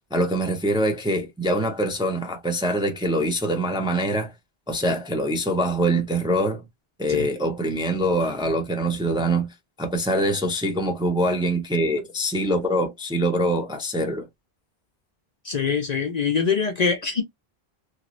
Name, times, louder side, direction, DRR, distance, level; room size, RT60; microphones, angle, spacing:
voice 1, 0.1-4.3 4.7-6.6 7.0-9.5 9.8-14.3, right 1 dB, 5° right, 0.5 m, -24 dB
voice 2, 15.4-17.2, left 6 dB, 50° left, 0.6 m, -23 dB
3.1 x 2.6 x 2.5 m
omnidirectional pair, 1.0 m